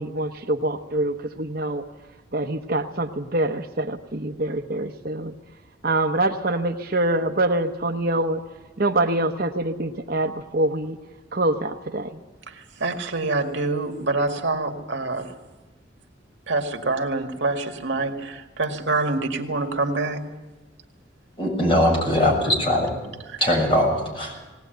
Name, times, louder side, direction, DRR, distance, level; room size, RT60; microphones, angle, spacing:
voice 1, 0.0-1.8 2.3-5.3 5.8-8.4 8.8-11.0 11.3-12.2, right 2 dB, 50° right, 6 dB, 1.0 m, -25 dB
voice 2, 12.8-15.3 16.5-20.2, right 3 dB, 75° right, 4 dB, 2.0 m, -26 dB
voice 3, 21.4-22.9 23.4-24.4, left 1 dB, 30° left, 0 dB, 7.0 m, -21 dB
19.5 x 18.5 x 9.2 m, 1.2 s
head